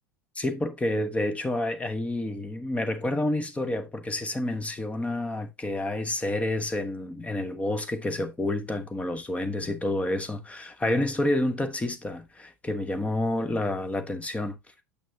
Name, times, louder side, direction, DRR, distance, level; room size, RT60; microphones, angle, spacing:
voice 1, 0.3-14.6, left 1 dB, 15° left, 1.2 m, -29 dB
8.3 x 6.1 x 2.8 m
figure-of-eight pair, 75°, 10 cm